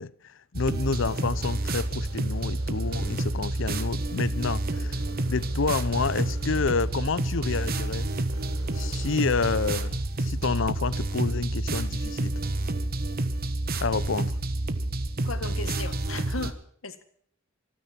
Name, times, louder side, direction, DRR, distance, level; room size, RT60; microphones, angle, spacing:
voice 1, 0.0-5.0 5.3-8.1 8.7-12.4 13.8-14.4, left 4 dB, 65° left, 0.7 m, -29 dB
sound 1, 0.5-16.5, right 2 dB, 50° right, 1.3 m, -29 dB
sound 2, 0.6-9.8, right 1 dB, 75° right, 3.3 m, -48 dB
voice 2, 15.2-17.0, left 3 dB, 90° left, 1.7 m, -36 dB
25.5 x 9.7 x 4.5 m
head